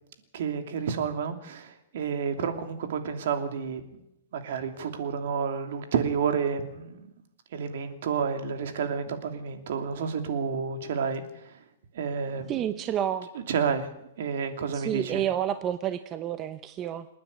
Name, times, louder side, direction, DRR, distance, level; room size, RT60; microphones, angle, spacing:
voice 1, 0.3-3.8 4.3-7.1 7.5-11.5 11.9-12.7 13.3-13.9 14.2-15.2, right 6 dB, 60° right, 7 dB, 2.9 m, -30 dB
voice 2, 12.5-13.3 14.7-17.1, right 10 dB, 20° right, 11 dB, 0.8 m, -29 dB
27.5 x 9.8 x 9.8 m, 0.85 s
hypercardioid pair, 160°, 0 cm